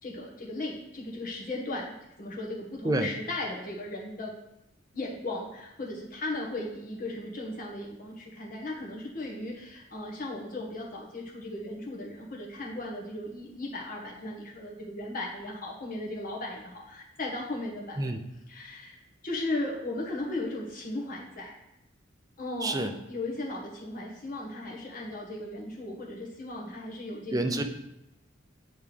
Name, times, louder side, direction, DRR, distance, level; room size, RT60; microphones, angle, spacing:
voice 1, 0.0-4.3 4.9-18.1 18.5-21.6 22.4-27.6, left 2 dB, 45° left, -2 dB, 1.3 m, -36 dB
voice 2, 27.3-27.6, right 1 dB, 20° right, 5 dB, 0.4 m, -27 dB
8.8 x 3.5 x 3.3 m, 0.87 s
head